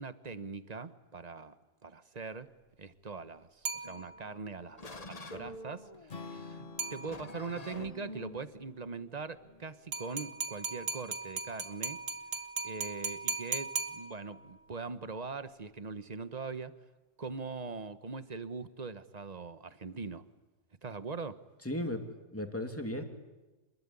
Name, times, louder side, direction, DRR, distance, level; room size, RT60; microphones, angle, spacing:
voice 1, 0.0-1.6 1.8-2.5 2.8-12.0 12.6-16.7 17.2-20.3 20.8-21.4, right 4 dB, 35° right, 12 dB, 1.2 m, -42 dB
sound 1, 3.6-4.5 6.8-7.5 9.9-14.5, right 4 dB, 90° right, 2.1 m, -38 dB
sound 2, 3.8-10.4, left 1 dB, 30° left, 1.4 m, -48 dB
Strum, 6.1-10.3, left 4 dB, 45° left, 1.7 m, -50 dB
voice 2, 21.6-23.0, left 1 dB, 10° left, 4 dB, 2.7 m, -36 dB
27.5 x 21.0 x 9.8 m, 1.2 s
omnidirectional pair, 1.3 m